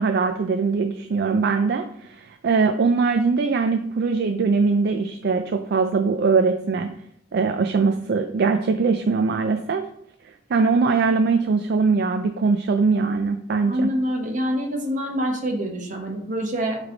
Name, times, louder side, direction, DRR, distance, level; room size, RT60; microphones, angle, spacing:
voice 1, 0.0-6.9 7.3-9.9 10.5-13.9, right 4 dB, 60° right, 7 dB, 0.4 m, -21 dB
voice 2, 13.7-16.8, equal, 45° right, 2 dB, 1.3 m, -26 dB
8.1 x 3.3 x 3.9 m, 0.74 s
head